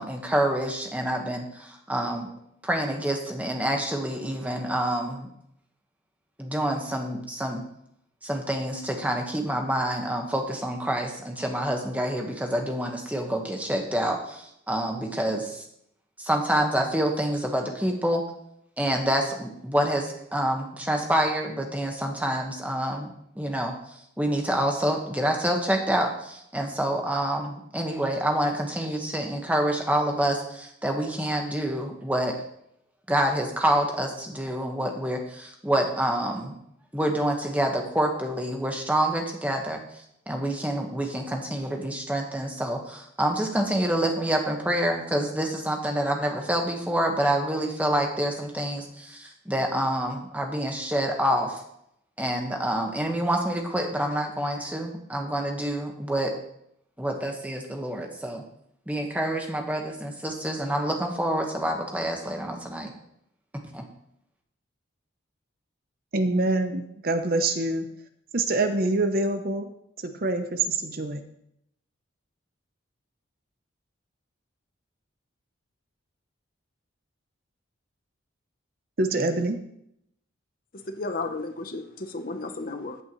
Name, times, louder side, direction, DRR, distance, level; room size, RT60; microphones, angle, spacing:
voice 1, 0.0-2.3 2.6-5.3 6.4-7.6 8.2-15.7 16.2-18.2 18.8-32.4 33.1-36.6 36.9-51.6 52.2-56.3 57.0-58.4 58.9-62.9 63.7-63.9, right 1 dB, 5° right, 1 dB, 1.3 m, -27 dB
voice 2, 66.1-67.9 68.3-69.7 70.0-71.2 79.0-79.6, right 2 dB, 45° right, 8 dB, 0.7 m, -25 dB
voice 3, 80.9-83.0, left 3 dB, 45° left, 7 dB, 0.8 m, -33 dB
15.0 x 8.1 x 3.1 m, 0.74 s
head